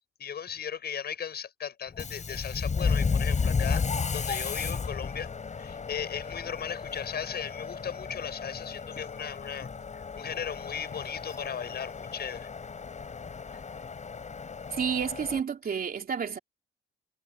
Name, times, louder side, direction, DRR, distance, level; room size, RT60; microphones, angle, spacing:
voice 1, 0.2-3.8 4.1-5.3 5.6-12.5, left 8 dB, 55° left, 6.3 m, -37 dB
Subway metro underground, 1.9-15.4, left 5 dB, 35° left, 6.8 m, -33 dB
voice 2, 14.7-16.4, right 7 dB, 50° right, 3.3 m, -30 dB
cardioid pair, 90°, 20 cm